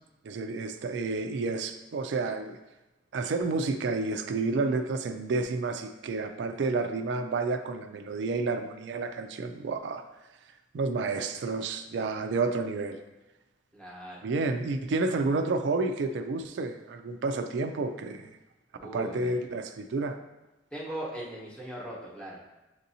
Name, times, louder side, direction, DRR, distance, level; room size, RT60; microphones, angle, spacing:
voice 1, 0.2-2.6 3.1-10.0 10.7-13.0 14.2-18.3 18.9-20.2, right 3 dB, 70° right, 7 dB, 0.3 m, -30 dB
voice 2, 13.7-14.3 18.8-19.3 20.7-22.4, right 1 dB, 5° left, -6 dB, 1.0 m, -39 dB
7.3 x 2.6 x 2.7 m, 1.1 s
head